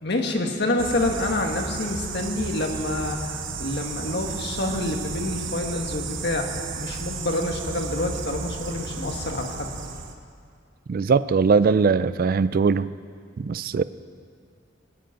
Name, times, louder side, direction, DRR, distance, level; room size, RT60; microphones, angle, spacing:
voice 1, 0.0-6.5 6.7-9.7, left 2 dB, 60° left, 2 dB, 1.7 m, -27 dB
sound 1, 0.8-10.1, right 4 dB, 85° right, 1.1 m, -33 dB
voice 2, 10.9-12.9 13.4-13.8, right 5 dB, 50° right, 15 dB, 0.4 m, -20 dB
19.0 x 7.8 x 8.8 m, 2.2 s
head